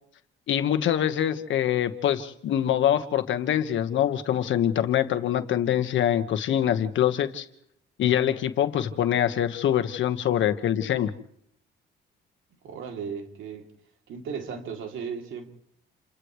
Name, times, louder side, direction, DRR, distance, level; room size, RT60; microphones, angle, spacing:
voice 1, 0.5-7.5 8.0-11.1, left 10 dB, 75° left, 8 dB, 1.5 m, -24 dB
voice 2, 12.6-13.7 14.1-15.5, right 6 dB, 80° right, 3 dB, 3.2 m, -35 dB
28.5 x 28.5 x 3.3 m, 0.71 s
cardioid pair, 90°, 20 cm